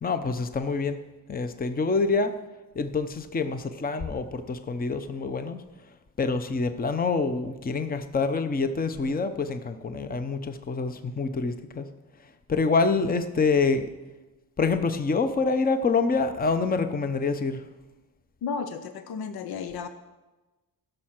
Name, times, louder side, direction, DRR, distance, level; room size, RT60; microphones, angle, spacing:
voice 1, 0.0-2.3 2.7-5.6 6.2-11.9 12.2-13.9 14.6-17.7, left 4 dB, 25° left, 9 dB, 0.7 m, -26 dB
voice 2, 18.4-19.9, left 5 dB, 85° left, 10 dB, 0.8 m, -33 dB
16.0 x 6.5 x 5.9 m, 1.1 s
cardioid pair, 120°, 36 cm